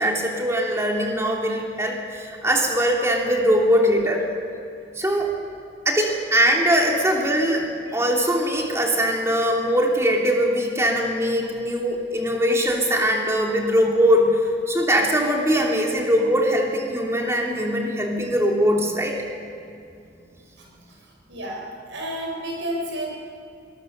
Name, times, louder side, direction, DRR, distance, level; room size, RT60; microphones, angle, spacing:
voice 1, 0.0-4.2 4.9-5.3 5.8-7.7 7.9-14.4 14.7-19.1, equal, 15° right, -1 dB, 3.1 m, -21 dB
voice 2, 21.3-23.1, right 1 dB, 80° right, -2 dB, 6.3 m, -31 dB
23.5 x 19.5 x 6.8 m, 2.5 s
head